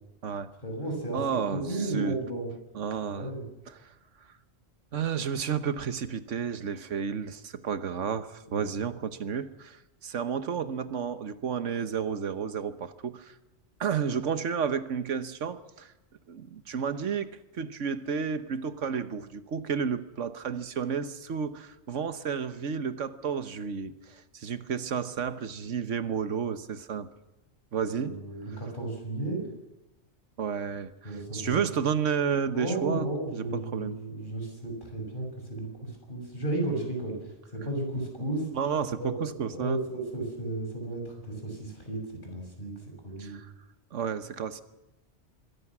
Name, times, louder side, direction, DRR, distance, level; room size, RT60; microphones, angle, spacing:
voice 1, 0.6-1.2 1.5-2.5 3.0-3.4 8.5-8.6 27.9-29.5 31.0-31.6 32.5-38.5 39.0-42.7 43.0-43.3, right 2 dB, 40° left, 2 dB, 6.4 m, -34 dB
voice 2, 1.1-2.2 2.7-3.3 3.7-3.8 4.9-13.3 13.8-15.9 16.3-27.1 27.7-28.2 30.4-34.0 38.5-39.8 43.2-43.5 43.9-44.6, right 7 dB, 80° right, 12 dB, 1.5 m, -31 dB
25.5 x 22.0 x 6.1 m, 0.97 s
omnidirectional pair, 1.2 m